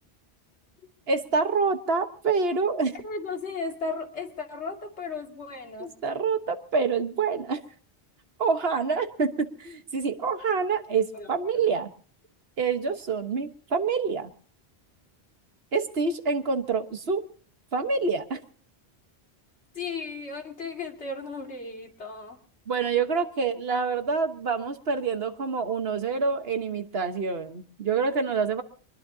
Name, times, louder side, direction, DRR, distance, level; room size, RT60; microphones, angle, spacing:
voice 1, 1.1-3.0 5.8-7.6 8.4-11.9 12.6-14.3 15.7-17.2 17.7-18.4 22.7-28.6, right 5 dB, 65° right, 8 dB, 1.5 m, -27 dB
voice 2, 3.0-5.9 11.1-11.7 19.7-22.4, left 4 dB, 85° left, 2 dB, 2.6 m, -35 dB
24.5 x 21.0 x 2.8 m, 0.43 s
omnidirectional pair, 1.1 m